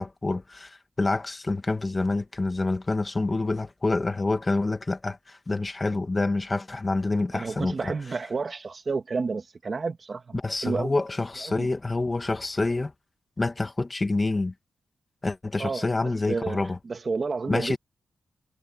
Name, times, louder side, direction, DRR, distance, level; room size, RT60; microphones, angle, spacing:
voice 1, 0.0-7.9 10.3-12.9 13.4-14.5 15.2-16.8 17.5-17.8, left 3 dB, 20° left, 1.9 m, -27 dB
voice 2, 7.3-10.9 11.5-11.7 15.6-15.9 16.3-16.6 16.9-17.7, right 4 dB, 35° right, 2.2 m, -30 dB
wide cardioid pair, 155°, 0 cm